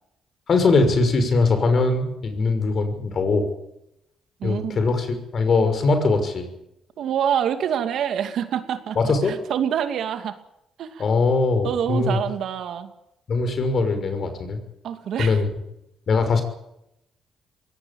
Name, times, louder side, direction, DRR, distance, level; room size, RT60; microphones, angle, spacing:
voice 1, 0.5-3.5 4.4-6.5 9.0-9.3 11.0-12.2 13.3-14.6 15.2-15.5 16.1-16.4, left 3 dB, 50° left, 8 dB, 6.0 m, -21 dB
voice 2, 4.4-4.8 7.0-10.4 10.8-11.0 11.6-12.9 14.8-15.4, right 9 dB, 70° right, 8 dB, 2.5 m, -26 dB
22.0 x 18.5 x 8.9 m, 0.83 s
cardioid pair, 90°, 0 cm